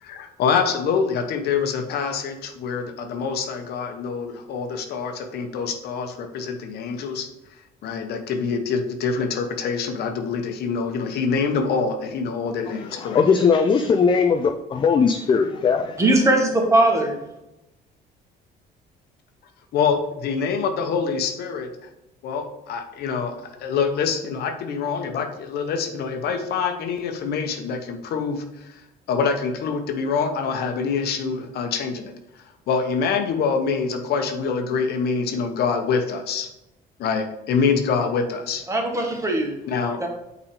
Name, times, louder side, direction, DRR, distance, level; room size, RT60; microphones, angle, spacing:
voice 1, 0.0-7.3 7.8-13.4 19.7-21.7 22.2-23.3 23.6-28.7 29.1-32.1 32.7-36.5 37.0-38.6 39.7-40.0, left 5 dB, 70° left, 6 dB, 0.9 m, -25 dB
voice 2, 12.7-16.0, left 5 dB, 30° left, 6 dB, 0.4 m, -20 dB
voice 3, 16.0-17.2 38.7-39.5 40.0-40.1, right 1 dB, 20° right, 1 dB, 1.5 m, -19 dB
5.8 x 4.0 x 4.8 m, 0.90 s
cardioid pair, 110°, 17 cm